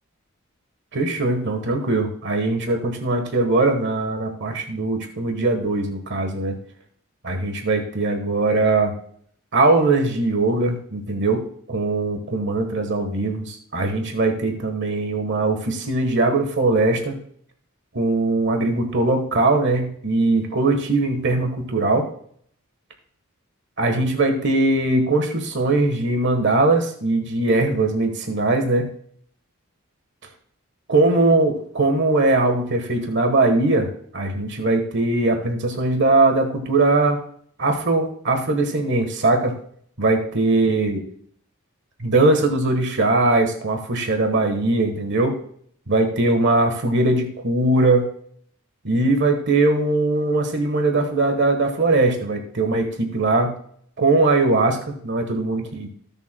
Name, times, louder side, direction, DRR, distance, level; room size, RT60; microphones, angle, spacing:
voice 1, 0.9-6.6 7.2-8.9 9.5-11.4 11.7-17.1 17.9-22.1 23.8-28.9 30.9-37.2 37.6-39.5 40.0-41.0 42.0-45.4 45.9-48.1 48.8-53.5 54.0-55.9, right 2 dB, 60° right, 5 dB, 1.3 m, -20 dB
19.5 x 7.1 x 2.3 m, 0.62 s
head